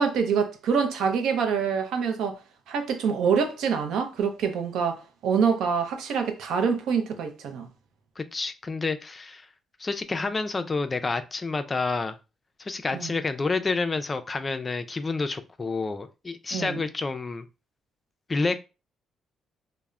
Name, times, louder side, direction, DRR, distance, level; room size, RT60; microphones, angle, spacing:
voice 1, 0.0-2.4 2.7-7.7 12.9-13.1 16.5-16.8, right 6 dB, 85° right, 0.5 m, -26 dB
voice 2, 8.2-9.5 9.8-12.2 12.6-17.5 18.3-18.6, left 3 dB, 30° left, 0.3 m, -29 dB
3.1 x 2.0 x 2.3 m
cardioid pair, 90°, 0 cm